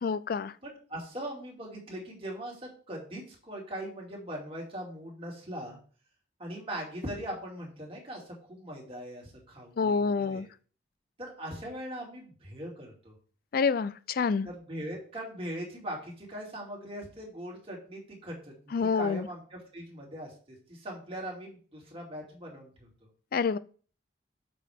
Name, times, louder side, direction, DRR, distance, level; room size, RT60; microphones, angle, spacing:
voice 1, 0.0-0.5 9.8-10.5 13.5-14.5 18.7-19.3 23.3-23.6, left 5 dB, 50° left, 0.4 m, -27 dB
voice 2, 0.6-5.8 6.4-10.5 11.2-13.1 14.4-18.4 18.6-22.9, equal, 30° right, 2.6 m, -40 dB
7.2 x 6.2 x 3.6 m
head